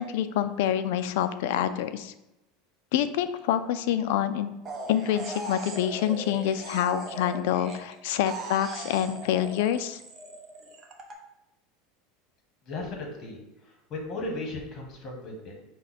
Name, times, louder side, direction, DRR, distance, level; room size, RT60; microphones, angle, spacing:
voice 1, 0.0-2.1 2.9-4.5 4.9-10.0, left 10 dB, 75° left, 11 dB, 0.3 m, -27 dB
sound 1, 4.6-7.9 8.3-11.1, right 2 dB, 30° right, 0.7 m, -39 dB
voice 2, 12.6-13.4 13.6-15.6, left 2 dB, 35° left, 1 dB, 1.2 m, -36 dB
5.6 x 2.2 x 4.1 m, 0.92 s
supercardioid pair, 130°, 0 cm